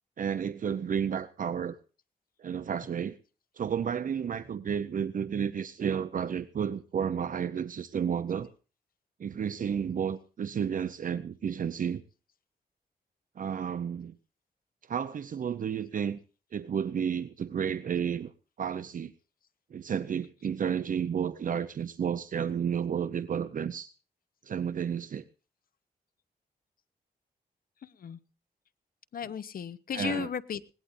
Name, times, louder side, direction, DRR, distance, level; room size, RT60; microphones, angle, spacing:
voice 1, 0.2-1.8 2.4-3.2 3.6-8.5 9.2-12.0 13.4-14.2 14.9-16.2 16.5-18.3 18.6-19.1 19.7-23.9 24.4-25.2 29.9-30.3, right 7 dB, 55° right, 0.7 m, -31 dB
voice 2, 27.8-28.2 29.1-30.7, left 8 dB, 60° left, 0.9 m, -35 dB
20.5 x 18.0 x 2.6 m
wide cardioid pair, 135°, 16 cm